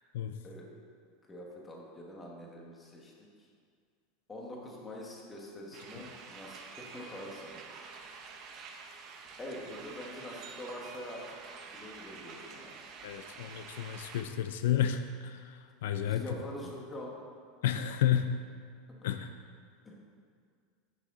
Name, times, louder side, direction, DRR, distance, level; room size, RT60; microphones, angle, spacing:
voice 1, 1.2-3.1 4.3-7.7 9.4-11.2 11.7-12.7 16.0-17.1 19.8-20.0, left 1 dB, 10° left, -2 dB, 1.2 m, -44 dB
sound 1, 5.7-14.2, right 5 dB, 30° right, 0.8 m, -48 dB
voice 2, 13.0-16.2 17.6-18.4 19.0-19.3, left 10 dB, 75° left, 8 dB, 0.5 m, -31 dB
10.0 x 8.3 x 3.7 m, 2.1 s
supercardioid pair, 175°, 0 cm